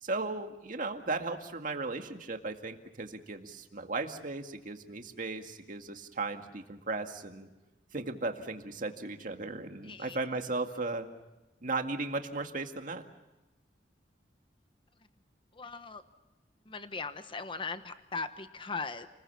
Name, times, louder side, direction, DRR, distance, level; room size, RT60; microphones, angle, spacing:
voice 1, 0.0-7.5 7.9-11.1 11.6-13.0, right 3 dB, 50° right, 5 dB, 2.1 m, -36 dB
voice 2, 9.8-10.2 15.6-16.0 16.7-19.1, left 4 dB, 30° left, 10 dB, 1.1 m, -39 dB
29.0 x 21.0 x 7.2 m, 1.1 s
head